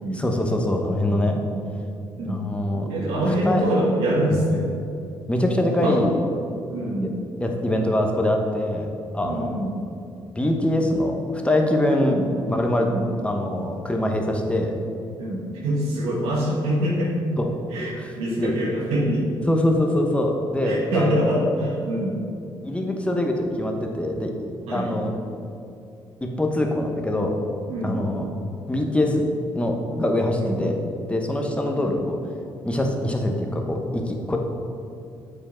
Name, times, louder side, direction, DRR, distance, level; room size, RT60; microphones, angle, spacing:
voice 1, 0.1-1.4 2.3-2.9 3.3-3.6 4.3-4.4 5.3-6.2 7.4-8.9 9.1-9.5 10.3-11.1 11.4-12.2 12.5-12.9 13.2-14.7 17.4-17.5 18.0-18.5 19.5-21.3 22.6-24.3 24.7-25.1 26.2-27.3 27.8-28.3 28.7-29.2 29.5-30.8 31.1-32.2 32.6-34.4, left 1 dB, 10° left, 2 dB, 1.0 m, -23 dB
voice 2, 2.8-4.6 5.8-6.0 6.7-7.2 9.2-9.8 12.0-12.2 12.8-13.1 15.2-17.1 17.7-19.4 20.6-22.2 24.7-24.9 27.7-28.1 30.4-30.6 31.7-32.0, right 1 dB, 90° right, -4 dB, 1.5 m, -25 dB
7.3 x 5.0 x 4.4 m, 2.6 s
cardioid pair, 75°, 10 cm